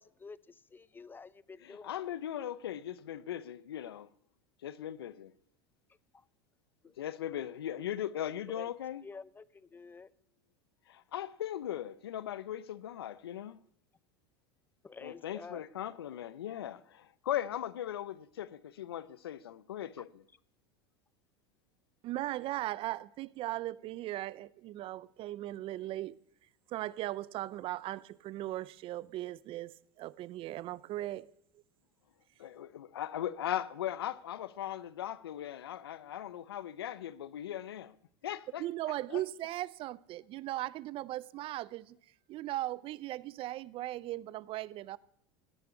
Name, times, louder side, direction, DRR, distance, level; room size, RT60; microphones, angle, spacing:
voice 1, 0.0-2.1 6.1-6.3 6.8-7.0 8.5-8.7 9.0-10.1 14.8-15.6 20.0-20.1, left 4 dB, 15° left, 0.7 m, -49 dB
voice 2, 1.6-4.1 4.6-5.3 7.0-9.0 10.9-13.6 15.0-20.1 32.4-38.0 38.2-38.6 39.1-39.2, left 11 dB, 90° left, 0.7 m, -39 dB
voice 3, 22.0-26.2 26.7-31.3 38.6-42.0 42.3-45.0, right 15 dB, 45° right, 0.6 m, -38 dB
17.5 x 6.9 x 9.7 m
hypercardioid pair, 95°, 12 cm